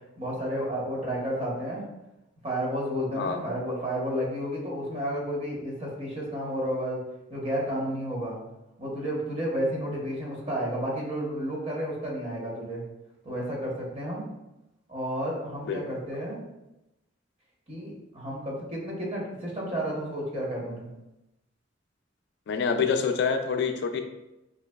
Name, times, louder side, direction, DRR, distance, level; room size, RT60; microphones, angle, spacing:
voice 1, 0.2-1.8 2.4-7.0 7.3-8.4 8.8-12.8 13.2-14.2 14.9-16.4 17.7-20.9, equal, 35° right, -4 dB, 0.9 m, -31 dB
voice 2, 15.6-16.0 22.5-24.0, left 5 dB, 60° left, 6 dB, 0.3 m, -27 dB
3.9 x 2.9 x 2.2 m, 0.95 s
head